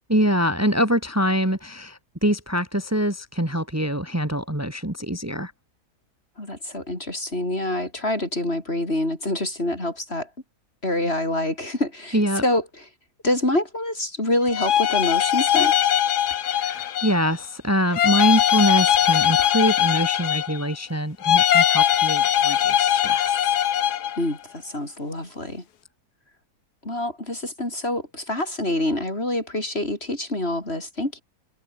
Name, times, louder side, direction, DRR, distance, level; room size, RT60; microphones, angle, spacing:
voice 1, 0.1-5.5 12.1-12.4 16.3-23.3, equal, 10° right, 2.9 m, -24 dB
voice 2, 6.4-10.3 10.8-12.8 13.2-15.7 24.2-25.6 26.8-31.2, left 1 dB, 35° left, 6.4 m, -26 dB
sound 1, 14.5-17.3 17.9-20.7 21.2-24.2, left 10 dB, 70° left, 1.5 m, -20 dB
omnidirectional pair, 1.8 m